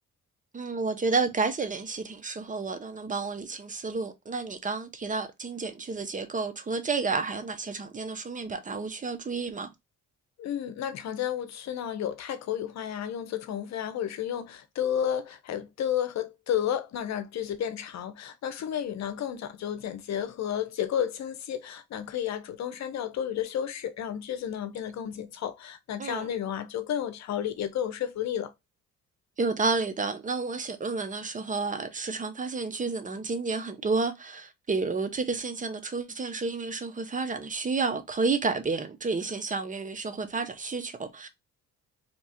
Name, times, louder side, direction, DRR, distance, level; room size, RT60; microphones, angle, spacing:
voice 1, 0.5-9.7 26.0-26.3 29.4-41.3, right 4 dB, 25° right, 0.7 m, -30 dB
voice 2, 10.4-28.5, left 9 dB, 65° left, 0.8 m, -32 dB
3.0 x 2.3 x 4.2 m
cardioid pair, 90°, 30 cm